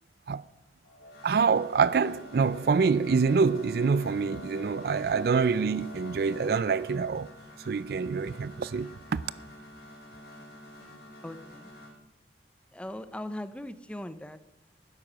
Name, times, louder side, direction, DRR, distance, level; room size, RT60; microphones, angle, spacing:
sound 1, 0.8-11.9, left 1 dB, 55° left, 4.9 m, -47 dB
voice 1, 1.2-7.3 7.7-9.2, right 5 dB, 55° right, 0.3 m, -26 dB
voice 2, 11.2-11.7 12.7-14.4, left 1 dB, 5° left, 0.6 m, -39 dB
12.0 x 10.0 x 6.2 m
head